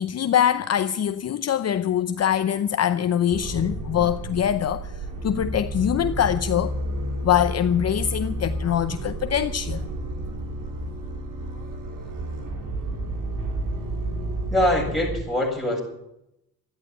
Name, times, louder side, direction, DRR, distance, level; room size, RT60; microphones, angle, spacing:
voice 1, 0.0-4.9 5.2-6.7 7.2-9.8, left 10 dB, 45° left, 0.7 m, -23 dB
sound 1, 3.3-15.2, right 1 dB, 65° right, 3.6 m, -31 dB
voice 2, 14.5-15.8, left 1 dB, ahead, 7.8 m, -23 dB
13.5 x 11.0 x 9.7 m
cardioid pair, 90°, 35 cm